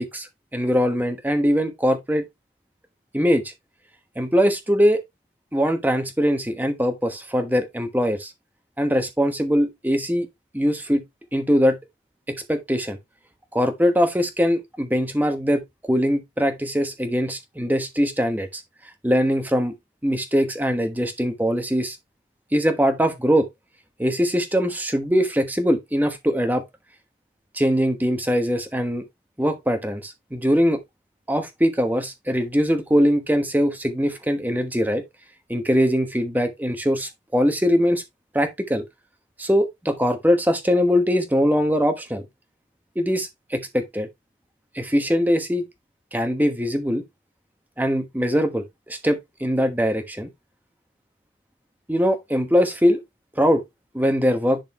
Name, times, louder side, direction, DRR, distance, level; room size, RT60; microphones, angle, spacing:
voice 1, 0.0-2.2 3.1-3.5 4.2-5.0 5.5-8.3 8.8-10.3 10.5-11.0 11.3-11.8 12.3-13.0 13.5-15.6 15.9-18.6 19.0-19.7 20.0-22.0 22.5-23.5 24.0-26.6 27.5-29.0 29.4-30.8 31.3-35.0 35.5-38.0 38.3-38.8 39.4-42.2 42.9-44.1 44.7-45.7 46.1-47.0 47.8-50.3 51.9-53.0 53.3-53.6 53.9-54.6, equal, 10° right, 1.1 m, -22 dB
10.5 x 4.2 x 3.0 m
head